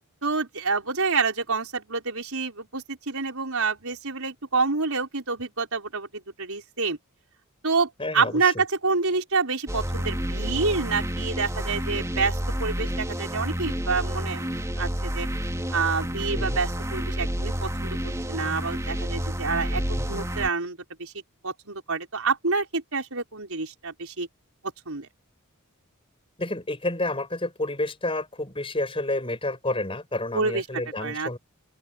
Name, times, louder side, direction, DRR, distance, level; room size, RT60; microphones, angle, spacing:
voice 1, 0.2-7.0 7.6-14.5 14.8-15.3 15.7-21.1 21.4-24.3 24.9-25.1 30.3-30.6 31.0-31.4, right 4 dB, 75° right, 4.7 m, -28 dB
voice 2, 8.0-8.5 16.3-16.6 19.9-20.1 26.4-31.4, left 2 dB, 25° left, 5.4 m, -30 dB
sound 1, 9.7-20.5, equal, 15° right, 3.3 m, -29 dB
open air
head